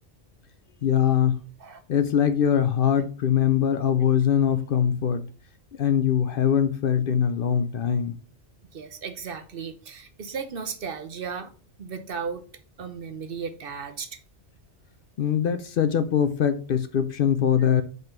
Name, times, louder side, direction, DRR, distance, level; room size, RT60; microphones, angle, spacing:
voice 1, 0.8-1.4 1.9-5.3 5.8-8.1 15.2-17.8, left 8 dB, 60° left, 0.7 m, -22 dB
voice 2, 8.7-11.5 11.8-12.4 12.8-14.2, right 6 dB, 55° right, 0.9 m, -35 dB
5.5 x 3.8 x 5.6 m
omnidirectional pair, 1.2 m